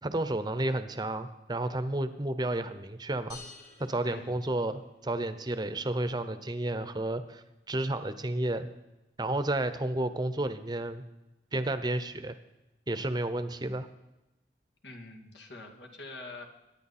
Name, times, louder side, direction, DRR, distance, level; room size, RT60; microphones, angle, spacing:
voice 1, 0.0-3.4 3.8-8.7 9.2-11.0 11.5-12.3 12.9-13.9, right 1 dB, 25° right, 11 dB, 0.8 m, -31 dB
sound 1, 3.3-5.1, left 4 dB, 65° left, 6.4 m, -51 dB
voice 2, 14.8-16.5, left 2 dB, 80° left, 2 dB, 2.4 m, -45 dB
24.0 x 10.5 x 4.3 m, 0.97 s
head